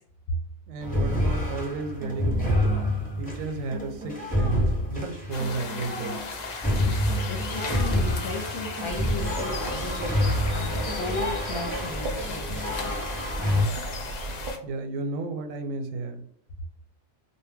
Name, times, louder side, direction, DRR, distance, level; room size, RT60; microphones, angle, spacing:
voice 1, 0.7-2.7 3.2-6.2 14.6-16.2, right 3 dB, 85° right, 5 dB, 1.0 m, -32 dB
sound 1, 0.8-13.6, left 1 dB, 10° left, 0.7 m, -28 dB
sound 2, 5.3-14.6, left 4 dB, 80° left, 0.3 m, -37 dB
voice 2, 6.6-13.0 13.3-13.7, left 2 dB, 60° left, 0 dB, 0.8 m, -36 dB
sound 3, 8.9-14.5, right 2 dB, 65° right, 0.4 m, -37 dB
2.2 x 2.2 x 3.3 m, 0.65 s
omnidirectional pair, 1.3 m